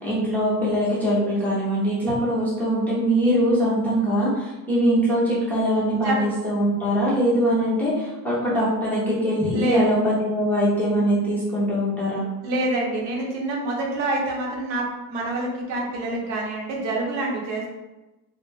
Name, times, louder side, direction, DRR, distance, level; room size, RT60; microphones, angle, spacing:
voice 1, 0.0-12.3, equal, 5° left, -9 dB, 0.4 m, -22 dB
voice 2, 12.4-17.7, right 2 dB, 80° right, -1 dB, 0.9 m, -26 dB
2.5 x 2.1 x 3.2 m, 1.1 s
cardioid pair, 155°, 42 cm